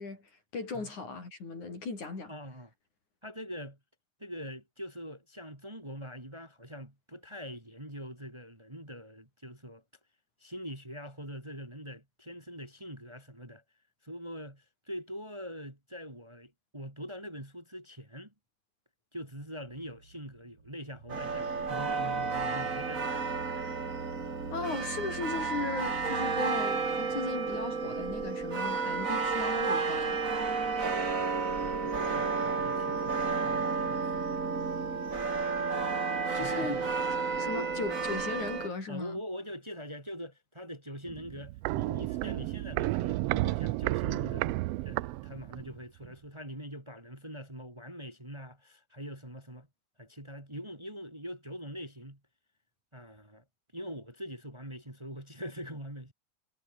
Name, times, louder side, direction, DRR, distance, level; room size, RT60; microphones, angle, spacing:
voice 1, 0.0-2.3 24.5-30.2 36.3-36.8 37.4-39.2, left 4 dB, 75° left, 8.0 m, -37 dB
voice 2, 2.3-2.7 3.2-3.8 4.2-9.8 10.4-13.6 14.0-18.3 19.1-23.1 31.6-35.0 36.3-36.8 37.3-37.8 38.9-49.7 50.0-52.2 52.9-53.4 53.7-56.1, equal, 10° right, 2.9 m, -43 dB
sound 1, 19.3-27.0, right 4 dB, 50° right, 5.2 m, -48 dB
sound 2, 21.1-38.7, right 4 dB, 30° right, 2.4 m, -31 dB
Walk footsteps, 41.1-45.8 46.0-46.1, right 18 dB, 90° right, 1.4 m, -32 dB
omnidirectional pair, 3.4 m